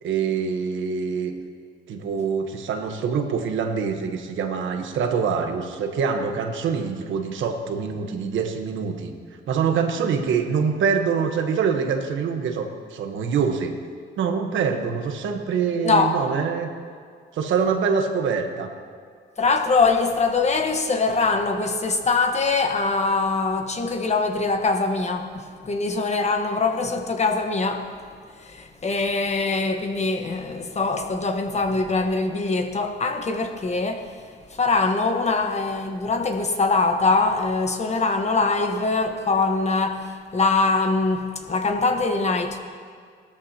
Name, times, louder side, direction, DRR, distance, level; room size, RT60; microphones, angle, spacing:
voice 1, 0.0-1.3 1.9-9.1 9.5-13.8 14.2-16.7 17.3-18.7, right 6 dB, 75° right, 5 dB, 1.2 m, -25 dB
voice 2, 15.8-16.2 19.4-27.8 28.4-34.1 34.5-40.0 40.3-42.6, left 3 dB, 35° left, 5 dB, 1.2 m, -23 dB
17.5 x 13.0 x 2.9 m, 2.1 s
cardioid pair, 90°, 20 cm